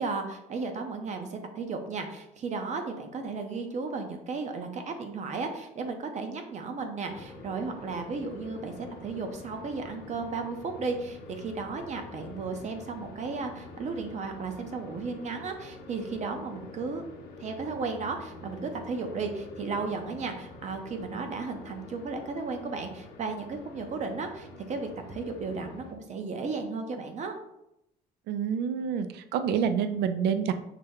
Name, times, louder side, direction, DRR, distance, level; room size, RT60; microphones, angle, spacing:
voice 1, 0.0-17.0 17.4-27.3, right 4 dB, 45° right, 5 dB, 0.7 m, -34 dB
sound 1, 7.1-25.9, left 2 dB, 70° left, 0.8 m, -47 dB
voice 2, 28.3-30.5, right 7 dB, 80° right, 10 dB, 0.4 m, -27 dB
5.7 x 2.2 x 3.6 m, 0.84 s
cardioid pair, 110°, 17 cm